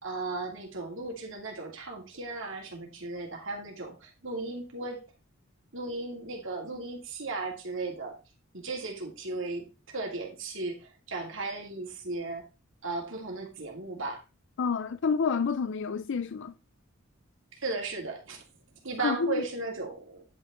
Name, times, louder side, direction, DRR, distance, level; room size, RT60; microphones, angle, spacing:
voice 1, 0.0-5.0 5.7-8.2 8.5-12.4 12.8-14.2 17.5-18.4 18.8-20.2, right 3 dB, 65° right, 2.7 m, -36 dB
voice 2, 14.6-16.5 19.0-19.4, left 5 dB, 60° left, 0.5 m, -29 dB
10.5 x 5.7 x 3.8 m
head